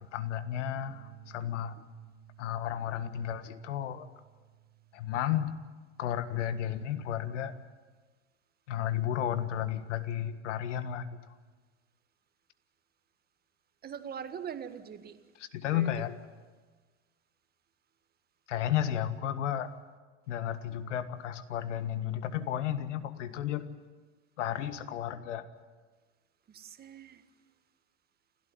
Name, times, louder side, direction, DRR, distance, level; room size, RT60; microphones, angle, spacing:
voice 1, 0.1-1.8 2.4-4.1 4.9-5.6 6.0-7.5 8.7-11.2 15.4-16.2 18.5-19.7 20.3-23.7 24.4-25.5, left 10 dB, 85° left, 11 dB, 1.7 m, -33 dB
sound 1, 0.8-7.0, right 8 dB, 65° left, 3.2 m, -57 dB
voice 2, 13.8-15.2 15.6-15.9 26.5-27.2, right 8 dB, 25° right, 9 dB, 1.7 m, -42 dB
29.0 x 13.0 x 9.5 m, 1.4 s
supercardioid pair, 125°, 35 cm